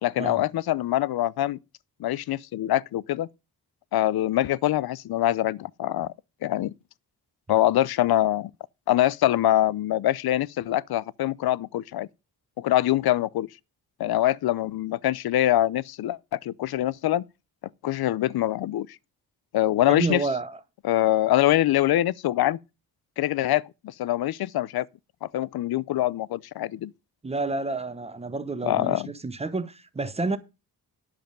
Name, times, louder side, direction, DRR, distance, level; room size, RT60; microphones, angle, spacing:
voice 1, 0.0-1.6 2.0-3.3 3.9-6.1 6.4-6.7 7.5-8.5 8.9-12.1 12.6-13.5 14.0-17.2 17.8-18.9 19.5-20.2 20.8-22.6 23.2-24.9 25.2-26.9 28.7-29.1, left 14 dB, 85° left, 0.6 m, -24 dB
voice 2, 19.9-20.6 27.2-30.4, right 3 dB, 15° right, 0.9 m, -29 dB
10.5 x 7.3 x 5.2 m
wide cardioid pair, 160°, 36 cm